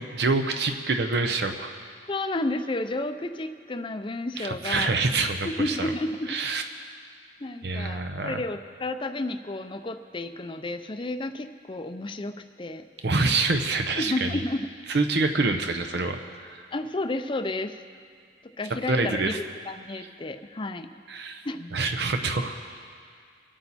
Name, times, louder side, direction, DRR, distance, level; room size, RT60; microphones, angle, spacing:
voice 1, 0.0-1.7 4.4-5.9 6.3-6.6 7.6-8.4 13.0-14.4 14.9-16.6 18.9-19.4 21.1-21.4 21.7-22.8, right 3 dB, 65° right, 5 dB, 0.7 m, -26 dB
voice 2, 2.1-4.9 5.4-6.4 7.4-12.8 14.0-14.7 16.7-17.8 18.6-19.3 19.7-20.9 21.4-21.8, left 2 dB, 30° left, 9 dB, 0.5 m, -31 dB
24.5 x 8.8 x 4.2 m, 2.2 s
head